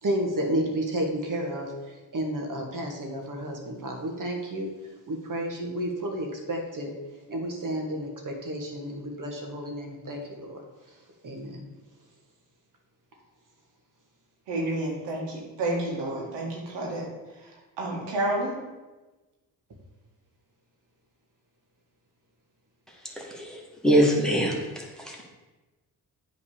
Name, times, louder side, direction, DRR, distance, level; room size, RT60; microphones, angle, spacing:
voice 1, 0.0-4.7 5.1-6.9 7.3-10.6 11.2-11.6 14.7-14.8, right 1 dB, 50° right, 2 dB, 2.0 m, -31 dB
voice 2, 14.5-18.6, right 1 dB, 80° right, -2 dB, 2.2 m, -30 dB
voice 3, 23.2-25.2, equal, ahead, -2 dB, 2.3 m, -24 dB
8.5 x 4.1 x 6.9 m, 1.2 s
supercardioid pair, 55°, 42 cm